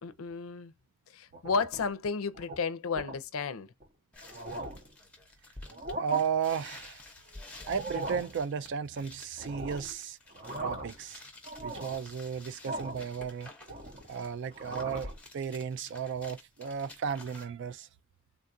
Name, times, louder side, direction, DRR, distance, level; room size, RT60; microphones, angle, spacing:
voice 1, 0.0-0.7 1.1-3.7, left 5 dB, 65° left, 0.5 m, -32 dB
sound 1, 1.3-1.9 2.3-2.6 3.0-3.2 3.8-3.9 4.2-4.9 5.7-6.2 7.6-8.3 9.4-9.9 10.3-11.0 11.4-12.0 12.6-13.1 13.4-14.1 14.5-15.2, right 2 dB, 40° right, 0.7 m, -39 dB
sound 2, 4.1-17.5, left 2 dB, 5° left, 0.7 m, -51 dB
voice 2, 6.0-7.0 7.7-10.2 10.6-11.3 11.6-13.5 14.1-17.9, right 7 dB, 55° right, 0.3 m, -34 dB
3.5 x 2.3 x 2.6 m
head